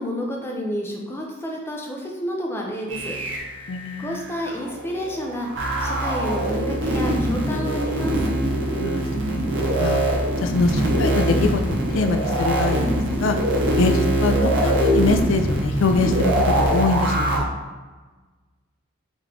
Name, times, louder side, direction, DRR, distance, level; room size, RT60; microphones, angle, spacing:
voice 1, 0.0-3.2 4.0-5.5 5.8-8.2, equal, 10° left, -1 dB, 0.5 m, -30 dB
sound 1, 2.9-17.4, right 1 dB, 55° right, 0.7 m, -23 dB
voice 2, 3.7-4.2 8.8-9.4 9.8-10.0 10.4-12.9 13.2-13.4 13.8-17.5, left 3 dB, 65° left, 6 dB, 0.4 m, -24 dB
3.7 x 2.9 x 3.7 m, 1.3 s
head